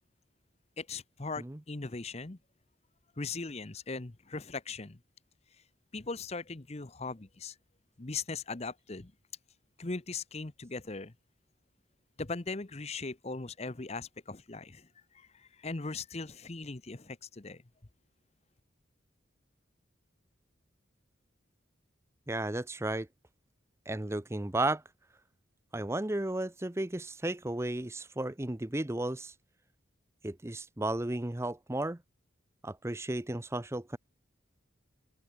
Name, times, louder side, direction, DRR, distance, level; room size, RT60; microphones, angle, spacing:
voice 1, 0.8-2.4 3.2-5.0 5.9-7.5 8.0-9.1 9.8-11.1 12.2-14.9 15.1-17.6, left 3 dB, 35° left, 0.9 m, -39 dB
voice 2, 22.3-23.1 23.9-24.8 25.7-29.3 30.2-32.0 32.6-34.0, right 1 dB, 15° right, 0.6 m, -34 dB
open air
head